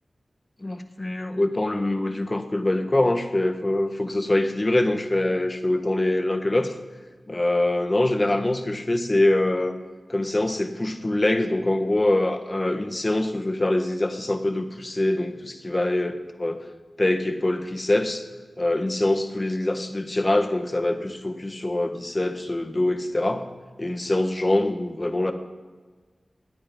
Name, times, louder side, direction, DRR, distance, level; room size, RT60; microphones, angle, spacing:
voice 1, 0.6-6.7 7.3-9.8 10.1-16.7 17.0-18.2 18.6-23.5 23.8-25.3, left 1 dB, 35° left, 7 dB, 1.4 m, -24 dB
21.0 x 8.8 x 5.4 m, 1.4 s
cardioid pair, 50°, 0 cm